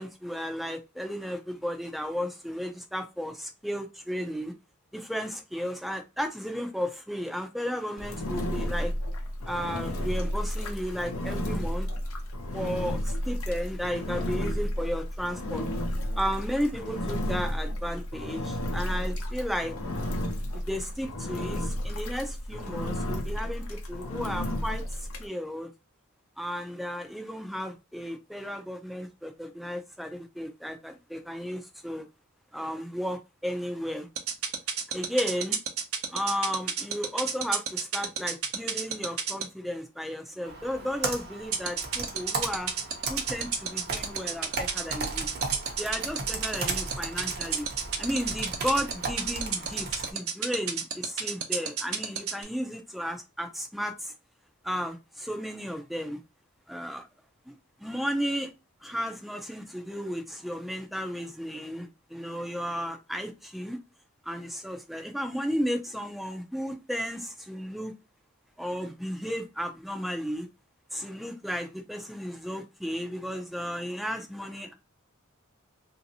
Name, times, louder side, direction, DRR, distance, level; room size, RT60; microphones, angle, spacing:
voice 1, 0.0-4.5 4.9-8.9 9.5-11.9 12.5-15.6 16.2-19.7 20.5-25.7 26.4-32.0 32.5-34.1 34.9-35.6 36.1-42.7 43.1-45.3 45.8-47.7 48.0-54.1 54.6-56.2 56.7-57.0 57.5-57.6 57.8-58.5 58.8-63.8 64.3-67.9 68.6-70.5 70.9-74.7, equal, ahead, 0.5 m, -34 dB
Engine, 8.0-25.3, equal, 80° left, 0.8 m, -32 dB
sound 1, 34.2-39.4 41.5-52.4, right 7 dB, 80° right, 0.8 m, -29 dB
Computer keyboard, 40.4-50.1, right 3 dB, 50° right, 0.8 m, -36 dB
3.1 x 2.7 x 2.7 m
head